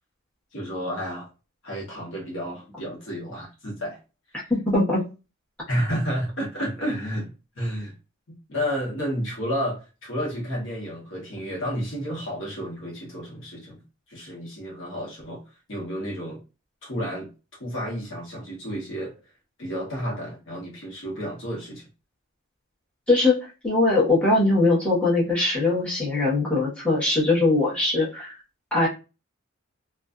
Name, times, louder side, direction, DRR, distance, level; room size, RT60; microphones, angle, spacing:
voice 1, 0.5-1.3 1.6-4.0 5.7-7.9 8.5-13.8 14.1-15.4 15.7-16.4 16.8-17.3 17.6-19.2 19.6-21.8, equal, 65° left, -2 dB, 1.0 m, -31 dB
voice 2, 4.5-5.0 23.1-23.4 23.6-28.3 28.7-28.9, left 2 dB, 5° left, -9 dB, 1.1 m, -21 dB
2.5 x 2.3 x 2.3 m, 0.30 s
head